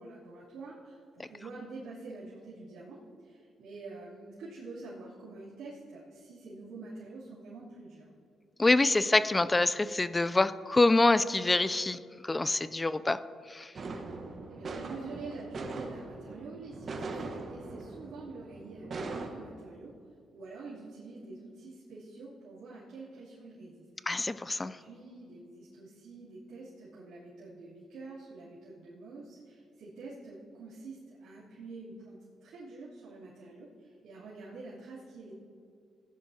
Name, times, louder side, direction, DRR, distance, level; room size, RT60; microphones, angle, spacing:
voice 1, 0.0-8.1 14.5-19.9 20.3-23.8 24.6-35.3, right 3 dB, 75° right, -12 dB, 3.0 m, -46 dB
voice 2, 8.6-13.2 13.5-13.7 24.1-24.8, left 2 dB, 20° left, 15 dB, 0.4 m, -26 dB
sound 1, 13.8-19.3, right 3 dB, 45° right, 1.2 m, -41 dB
16.5 x 11.0 x 2.8 m, 2.3 s
cardioid pair, 90°, 0 cm